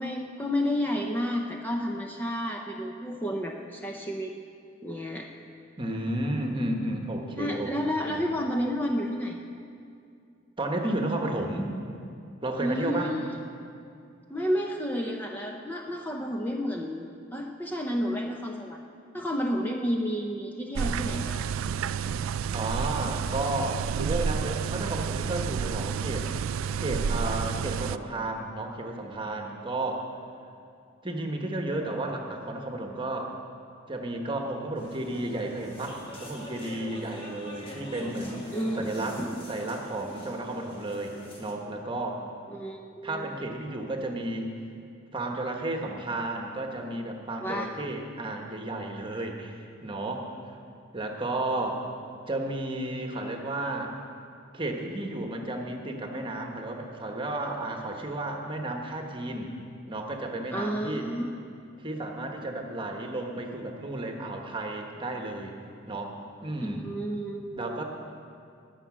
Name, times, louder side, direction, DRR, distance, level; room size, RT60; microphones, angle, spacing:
voice 1, 0.0-4.3 4.8-5.3 7.4-9.4 12.6-13.3 14.3-18.8 19.1-21.4 38.5-38.8 39.2-39.5 42.5-43.4 47.4-47.7 60.5-61.3 66.6-67.8, equal, 10° left, 1 dB, 0.6 m, -31 dB
voice 2, 5.8-7.7 8.1-8.2 10.6-11.7 12.4-13.1 22.5-26.3 26.8-30.1 31.0-33.3 33.9-39.2 39.5-42.3 43.0-44.5 45.1-50.4 50.9-51.9 52.3-54.0 54.5-59.5 59.9-61.1 61.8-65.6 65.9-66.9 67.5-67.8, right 2 dB, 25° right, 2 dB, 1.2 m, -33 dB
sound 1, 20.8-28.0, right 6 dB, 90° right, 0.4 m, -30 dB
sound 2, 34.8-41.5, equal, 25° left, 1.8 m, -44 dB
20.0 x 6.8 x 6.2 m, 2.4 s
head